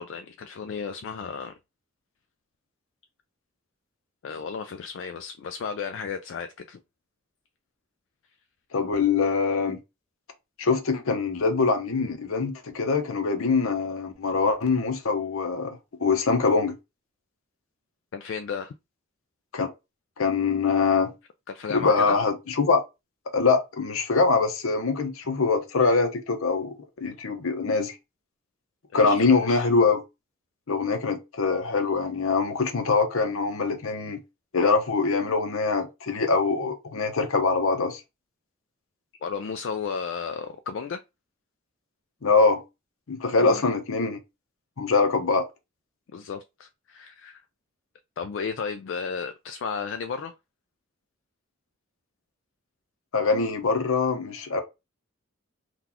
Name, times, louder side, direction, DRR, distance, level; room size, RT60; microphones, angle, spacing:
voice 1, 0.0-1.5 4.2-6.8 18.1-18.7 21.5-22.2 28.9-29.7 39.2-41.0 43.4-43.6 46.1-47.4 48.2-50.3, left 6 dB, 60° left, 0.3 m, -34 dB
voice 2, 8.7-9.8 10.6-16.7 19.5-19.7 20.2-21.1 21.7-22.8 23.3-28.0 28.9-30.0 30.7-34.2 34.5-38.0 42.2-42.6 43.1-44.2 44.8-45.4 53.1-54.6, left 4 dB, 85° left, 0.7 m, -23 dB
3.8 x 2.4 x 2.8 m
head